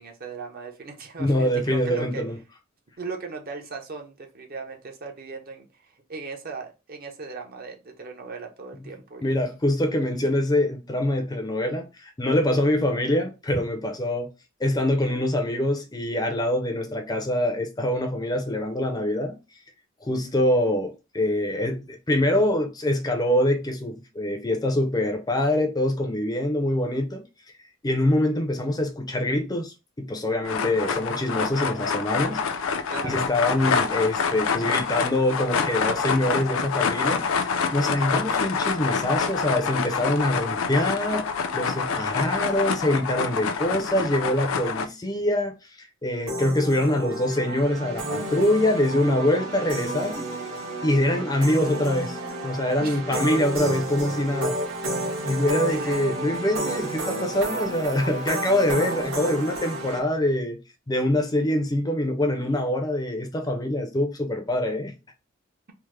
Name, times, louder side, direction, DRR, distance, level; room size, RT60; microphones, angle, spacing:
voice 1, 0.0-2.2 3.0-9.2 32.9-33.2 52.8-53.2 55.7-56.1, right 4 dB, 45° right, 0.7 m, -38 dB
voice 2, 1.2-2.4 9.2-14.3 14.6-19.4 20.0-27.2 27.8-32.4 33.0-41.3 41.5-50.3 50.8-52.2 52.4-54.6 55.2-60.6 60.9-64.9, left 1 dB, 20° left, 0.5 m, -24 dB
sound 1, 30.5-44.9, left 5 dB, 75° left, 0.4 m, -27 dB
sound 2, 46.3-60.0, right 1 dB, 75° right, 1.3 m, -31 dB
3.3 x 2.0 x 3.1 m
head